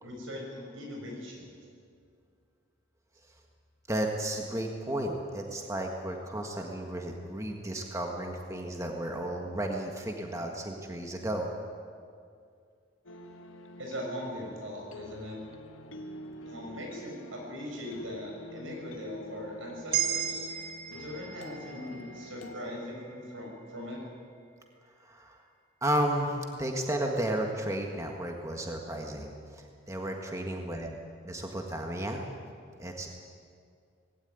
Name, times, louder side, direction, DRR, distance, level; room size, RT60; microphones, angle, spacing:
voice 1, 0.0-1.5 13.8-15.4 16.4-20.5 20.9-24.0, left 1 dB, 90° right, 0 dB, 6.9 m, -40 dB
voice 2, 3.9-11.5 25.0-25.4 25.8-31.0 31.2-32.2 32.8-33.1, right 1 dB, 15° right, 2 dB, 1.6 m, -33 dB
sound 1, 13.1-22.6, left 1 dB, 85° left, 1.6 m, -46 dB
sound 2, 19.9-24.2, right 10 dB, 50° right, 2.1 m, -36 dB
19.5 x 17.0 x 9.5 m, 2.2 s
head